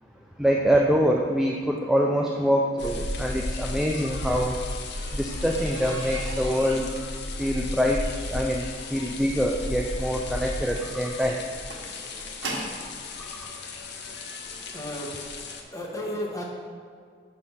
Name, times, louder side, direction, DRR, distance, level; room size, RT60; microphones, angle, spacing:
voice 1, 0.4-4.6 5.1-6.9 7.4-8.0 8.3-8.7 8.9-11.4 13.2-13.5, equal, ahead, 0 dB, 0.3 m, -25 dB
sound 1, 2.8-15.6, left 2 dB, 60° left, 0.7 m, -34 dB
sound 2, 4.0-12.9 13.8-13.9 14.5-14.7 15.0-15.1 15.4-15.5, right 2 dB, 85° right, 1.3 m, -40 dB
voice 2, 14.7-15.1 15.7-16.4, equal, 15° left, -3 dB, 1.1 m, -33 dB
6.6 x 4.2 x 5.5 m, 2.1 s
head